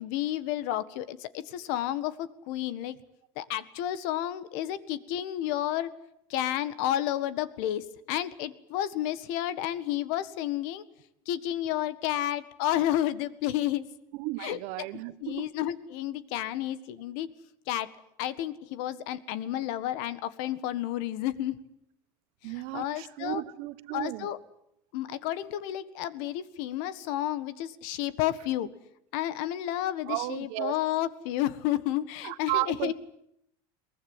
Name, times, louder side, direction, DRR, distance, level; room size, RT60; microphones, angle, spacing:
voice 1, 0.0-3.0 3.3-5.9 6.3-10.9 11.2-13.8 14.4-14.9 15.2-17.3 17.7-17.9 18.2-21.6 22.4-23.4 23.9-24.4 24.9-28.7 29.1-32.9, left 12 dB, 70° left, 14 dB, 1.7 m, -31 dB
voice 2, 14.1-15.5 22.4-24.3 30.1-30.7 32.2-32.9, right 18 dB, 65° right, 14 dB, 1.4 m, -33 dB
23.0 x 20.0 x 9.7 m, 0.78 s
supercardioid pair, 135°, 12 cm